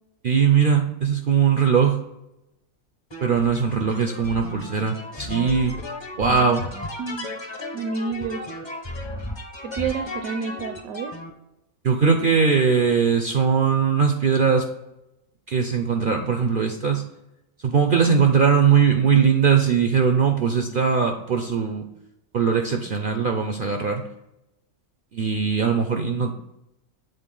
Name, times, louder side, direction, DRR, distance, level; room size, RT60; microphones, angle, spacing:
voice 1, 0.2-2.0 3.2-5.8 6.2-6.6 11.8-14.7 15.5-17.0 17.6-21.9 22.3-24.0 25.1-26.3, right 6 dB, 60° right, 5 dB, 0.5 m, -20 dB
sound 1, 3.1-11.3, left 1 dB, 25° left, 0.6 m, -35 dB
voice 2, 6.2-6.6 7.0-7.3 7.7-8.4 9.6-11.2 25.6-25.8, right 5 dB, 80° right, 7 dB, 1.0 m, -30 dB
7.9 x 3.9 x 3.8 m, 0.90 s
omnidirectional pair, 1.5 m